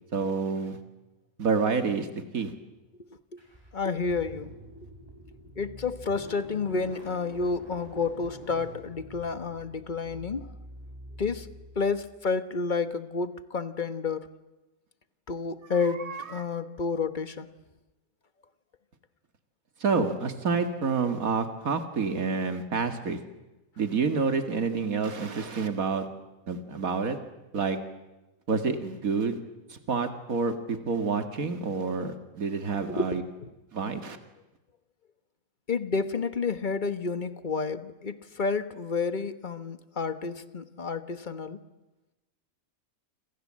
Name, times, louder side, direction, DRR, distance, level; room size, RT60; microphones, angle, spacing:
voice 1, 0.1-0.8 1.4-2.1 2.3-2.5 15.8-16.2 19.8-23.2 23.8-26.1 26.5-27.2 27.5-27.8 28.5-29.4 29.7-33.2 33.7-34.2, right 5 dB, 80° right, 7 dB, 2.4 m, -28 dB
voice 2, 3.0-3.4 3.7-4.6 5.6-10.5 11.2-11.5 11.7-14.3 15.3-17.5 32.9-33.5 35.7-41.6, left 4 dB, 35° left, 11 dB, 1.4 m, -30 dB
Car / Engine starting, 3.4-12.1, equal, 15° right, 7.1 m, -46 dB
29.0 x 26.5 x 7.6 m, 1.0 s
omnidirectional pair, 1.4 m